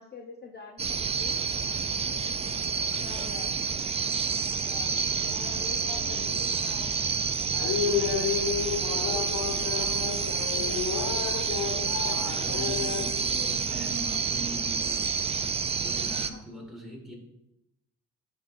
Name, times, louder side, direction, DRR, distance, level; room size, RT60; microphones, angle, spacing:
voice 1, 0.0-1.3 2.9-3.5 4.6-5.0 5.3-6.9 7.7-10.3 10.5-11.1 11.7-12.6 16.3-16.6, left 3 dB, 35° left, 1 dB, 0.7 m, -46 dB
sound 1, 0.8-16.3, right 5 dB, 20° right, 0.4 m, -29 dB
voice 2, 2.9-3.3 12.4-15.1 15.8-17.1, right 1 dB, ahead, -2 dB, 2.1 m, -41 dB
sound 2, 5.1-13.9, left 7 dB, 85° left, 0.6 m, -33 dB
10.5 x 4.1 x 2.6 m, 0.82 s
cardioid pair, 90°, 30 cm